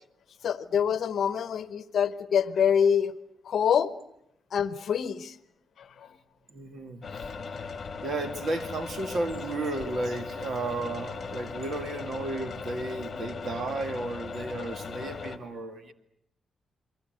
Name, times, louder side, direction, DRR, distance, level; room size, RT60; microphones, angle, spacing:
voice 1, 0.4-3.1 3.4-3.9 4.5-5.4 5.8-6.1, left 8 dB, 55° left, 14 dB, 1.1 m, -26 dB
voice 2, 6.5-7.4 8.0-15.9, right 2 dB, 45° right, 8 dB, 2.1 m, -33 dB
sound 1, 7.0-15.4, left 5 dB, 30° left, 2.3 m, -38 dB
29.5 x 22.5 x 7.9 m, 0.75 s
wide cardioid pair, 165°, 0 cm